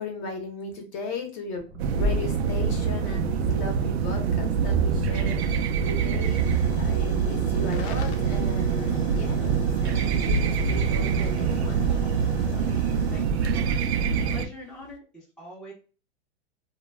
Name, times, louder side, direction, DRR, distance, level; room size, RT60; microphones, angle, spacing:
voice 1, 0.0-12.0, left 3 dB, 35° left, 4 dB, 0.7 m, -37 dB
Ocean, 1.6-12.3, right 1 dB, 35° right, 0.7 m, -33 dB
sound 1, 1.8-14.5, right 6 dB, 70° right, 0.5 m, -25 dB
Hiss / Fire / Tick, 4.6-15.0, left 5 dB, 75° left, 0.6 m, -45 dB
voice 2, 12.5-15.7, left 2 dB, ahead, -6 dB, 0.6 m, -44 dB
2.2 x 2.1 x 3.3 m, 0.35 s
hypercardioid pair, 135°, 33 cm